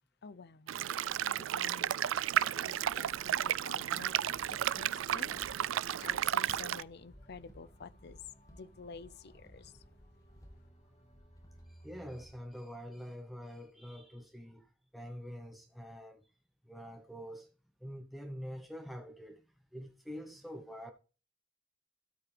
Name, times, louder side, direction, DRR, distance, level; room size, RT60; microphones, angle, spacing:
voice 1, 0.2-0.7 1.3-2.0 2.6-8.2 8.5-9.7, left 4 dB, 60° left, 0.6 m, -50 dB
sound 1, 0.7-6.8, right 10 dB, 90° right, 0.4 m, -33 dB
sound 2, 1.0-12.6, equal, 20° left, 2.0 m, -61 dB
sound 3, 3.5-12.4, right 1 dB, 35° left, 3.4 m, -61 dB
voice 2, 11.7-14.7 14.9-16.2 16.7-17.5 17.8-19.4 19.7-20.9, equal, ahead, 0.9 m, -45 dB
13.0 x 8.7 x 3.4 m
head